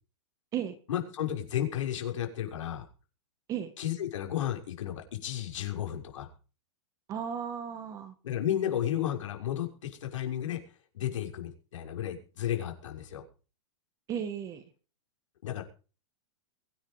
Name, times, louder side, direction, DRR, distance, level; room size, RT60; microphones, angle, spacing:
voice 1, 0.9-2.9 3.8-6.3 8.2-10.6 10.9-13.2 15.4-15.6, left 11 dB, 80° left, 3 dB, 6.2 m, -33 dB
voice 2, 7.1-8.1 14.1-14.6, right 8 dB, 20° right, 10 dB, 1.9 m, -35 dB
23.0 x 10.0 x 5.1 m, 0.37 s
supercardioid pair, 165°, 16 cm